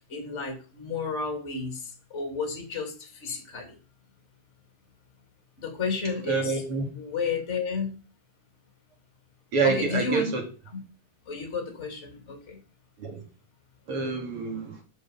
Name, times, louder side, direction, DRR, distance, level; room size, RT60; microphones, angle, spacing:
voice 1, 0.0-1.8 2.1-3.7 5.6-6.6 6.9-7.9 9.6-10.3 11.3-12.6, left 4 dB, 20° left, 2.6 m, -32 dB
voice 2, 6.3-6.9 9.5-10.4 13.0-13.2 13.9-14.8, right 4 dB, 40° right, 2.6 m, -27 dB
8.0 x 6.4 x 7.1 m
omnidirectional pair, 4.4 m